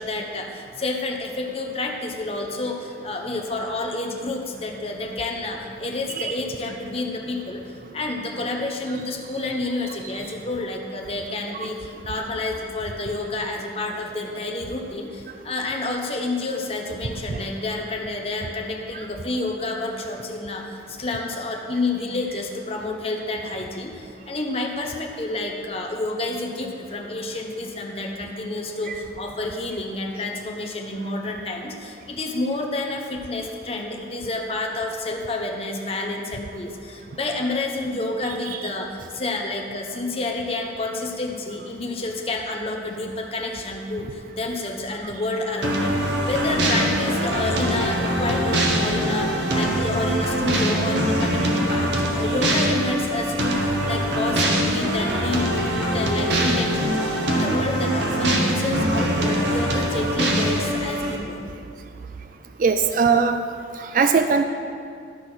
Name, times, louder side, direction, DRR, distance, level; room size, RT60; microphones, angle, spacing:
voice 1, 0.0-61.5, left 2 dB, 30° left, 2 dB, 0.8 m, -29 dB
sound 1, 45.6-61.2, equal, 75° right, 1.1 m, -23 dB
voice 2, 62.6-63.4 63.8-64.4, right 5 dB, 45° right, 7 dB, 0.3 m, -19 dB
12.0 x 4.1 x 6.1 m, 2.3 s
head